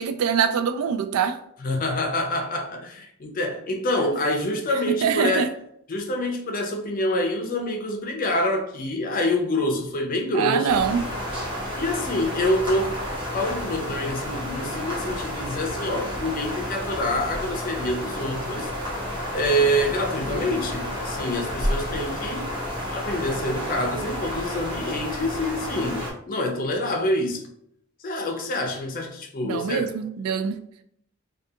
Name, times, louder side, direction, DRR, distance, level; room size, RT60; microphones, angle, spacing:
voice 1, 0.0-1.4 5.0-5.5 10.3-11.0 29.4-30.6, right 7 dB, 90° right, 8 dB, 0.3 m, -24 dB
voice 2, 1.6-5.5 5.9-10.8 11.8-12.9 13.3-18.7 19.3-22.5 22.9-27.4 28.0-29.9, left 1 dB, 40° left, 2 dB, 0.5 m, -26 dB
sound 1, 10.7-26.1, equal, 20° right, 0.8 m, -31 dB
2.3 x 2.3 x 2.7 m, 0.71 s
head